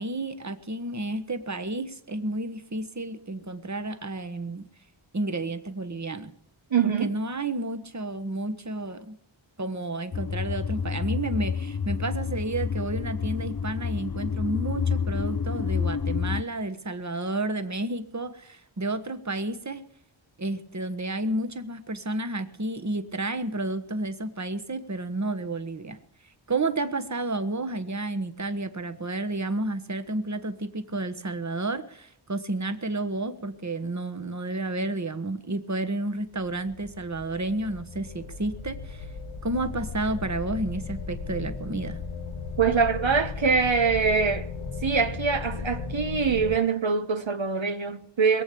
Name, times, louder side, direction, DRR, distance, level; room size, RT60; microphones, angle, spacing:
voice 1, 0.0-4.7 5.1-6.3 6.8-9.2 9.6-19.8 20.4-26.0 26.5-39.1 39.4-42.0, right 2 dB, 35° right, 1.3 m, -31 dB
voice 2, 6.7-7.1 42.6-44.5 44.8-48.4, right 5 dB, 70° right, 1.1 m, -24 dB
sound 1, 10.1-16.4, left 6 dB, 45° left, 0.7 m, -29 dB
sound 2, 36.4-46.6, left 5 dB, 75° left, 1.0 m, -36 dB
22.0 x 8.5 x 7.0 m
wide cardioid pair, 60°, 48 cm